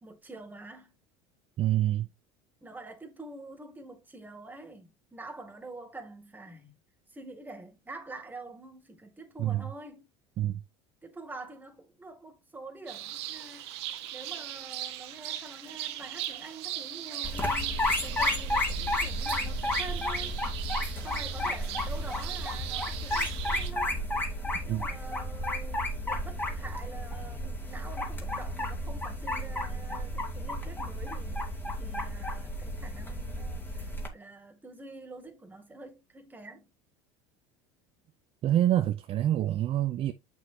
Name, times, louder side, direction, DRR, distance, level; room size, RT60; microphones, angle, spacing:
voice 1, 0.0-0.9 2.6-6.8 7.1-10.1 11.0-13.7 14.1-20.4 21.0-24.1 24.6-31.5 31.8-36.7, right 2 dB, 15° right, 2.3 m, -46 dB
voice 2, 1.6-2.1 9.4-9.7 10.4-10.6 24.7-24.9 38.4-40.1, right 12 dB, 45° right, 0.7 m, -26 dB
sound 1, 12.9-23.7, right 13 dB, 80° right, 1.0 m, -39 dB
sound 2, 17.2-34.1, left 1 dB, 15° left, 2.3 m, -32 dB
7.4 x 6.3 x 2.7 m
supercardioid pair, 95°, 14 cm